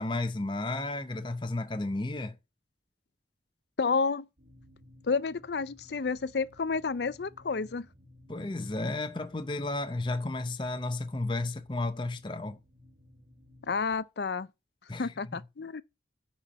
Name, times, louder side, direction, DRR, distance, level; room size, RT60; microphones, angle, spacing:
voice 1, 0.0-2.4 8.3-12.6 14.9-15.1, left 2 dB, 25° left, 0.7 m, -33 dB
voice 2, 3.8-4.3 5.1-7.9 13.7-14.5 15.0-15.8, left 4 dB, 65° left, 0.5 m, -30 dB
sound 1, 4.4-13.9, left 1 dB, 45° right, 1.3 m, -57 dB
9.8 x 4.5 x 5.2 m
head